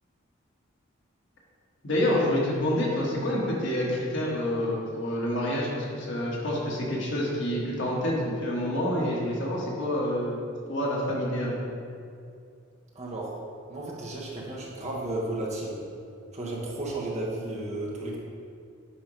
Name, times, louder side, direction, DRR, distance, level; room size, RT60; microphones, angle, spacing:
voice 1, 1.8-10.4 10.7-11.6, left 1 dB, 65° left, -4 dB, 1.5 m, -27 dB
voice 2, 12.9-13.3 13.7-15.8 16.3-18.2, right 2 dB, 35° right, -3 dB, 1.1 m, -33 dB
8.7 x 3.0 x 5.1 m, 2.3 s
head